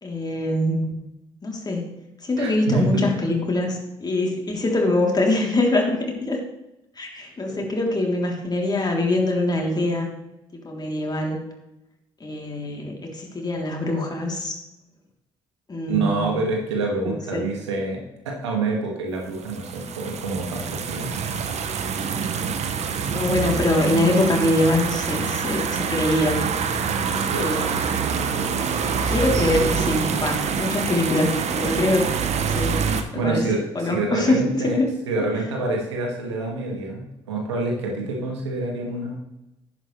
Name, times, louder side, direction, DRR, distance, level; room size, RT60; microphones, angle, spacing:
voice 1, 0.0-0.9 1.4-1.9 2.2-6.4 7.0-10.1 10.6-11.4 12.2-14.5 15.7-16.3 17.0-17.4 23.1-26.5 27.4-27.7 28.7-32.1 32.5-33.4 33.7-34.9, left 2 dB, 30° left, 0 dB, 3.3 m, -23 dB
voice 2, 2.4-3.0 7.6-7.7 15.9-21.1 26.9-27.5 28.8-28.9 33.1-34.8 35.1-39.2, right 3 dB, 85° right, 0 dB, 2.1 m, -27 dB
sound 1, 19.4-33.0, right 6 dB, 50° right, 1.1 m, -25 dB
11.0 x 9.7 x 3.3 m, 0.91 s
hypercardioid pair, 50°, 14 cm